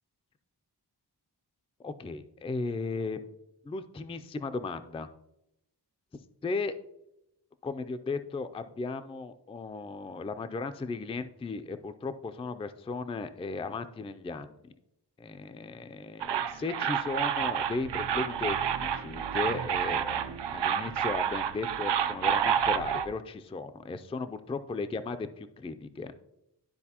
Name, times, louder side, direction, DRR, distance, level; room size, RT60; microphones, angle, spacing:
voice 1, 1.8-3.3 3.6-5.1 6.4-6.8 7.6-14.6 15.2-26.1, left 3 dB, 15° left, 10 dB, 0.3 m, -36 dB
sound 1, 16.2-23.1, right 8 dB, 85° right, 0.6 m, -29 dB
12.0 x 4.1 x 2.8 m, 0.85 s
wide cardioid pair, 100°, 41 cm